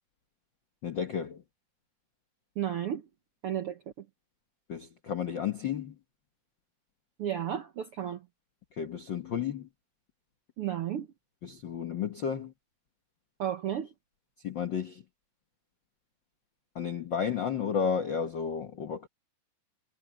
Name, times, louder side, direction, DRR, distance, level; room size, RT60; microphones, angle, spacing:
voice 1, 0.8-1.4 4.7-5.9 8.8-9.7 11.4-12.5 14.4-15.0 16.7-19.1, left 7 dB, 80° left, 1.0 m, -32 dB
voice 2, 2.6-3.1 3.4-4.1 7.2-8.2 10.6-11.1 13.4-13.9, right 10 dB, 75° right, 1.3 m, -33 dB
omnidirectional pair, 4.0 m